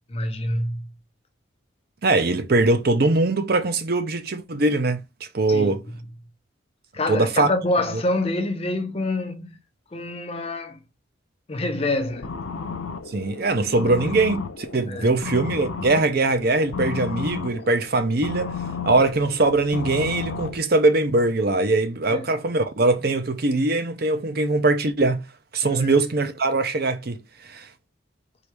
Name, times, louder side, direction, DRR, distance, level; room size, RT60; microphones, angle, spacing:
voice 1, 0.1-0.9 5.5-6.0 6.9-9.6 9.9-10.8 11.5-12.4 13.8-13.9 14.9-15.2 22.1-22.3 25.6-26.0, left 2 dB, 30° left, 0.6 m, -27 dB
voice 2, 2.0-5.0 5.3-5.8 7.1-7.5 13.1-18.5 18.9-25.3 25.5-27.7, right 2 dB, 50° right, 0.6 m, -21 dB
sound 1, 12.0-20.6, left 5 dB, 85° left, 0.6 m, -33 dB
4.6 x 2.7 x 3.4 m
head